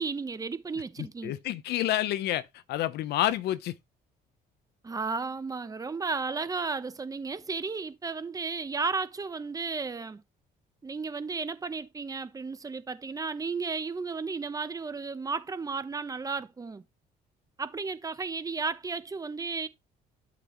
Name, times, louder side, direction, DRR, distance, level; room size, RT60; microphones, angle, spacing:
voice 1, 0.0-1.3 4.8-10.2 10.8-16.8 17.6-19.7, right 4 dB, 20° right, 1.0 m, -33 dB
voice 2, 1.2-3.7, left 13 dB, 80° left, 0.9 m, -29 dB
11.5 x 6.0 x 3.1 m
cardioid pair, 110°, 17 cm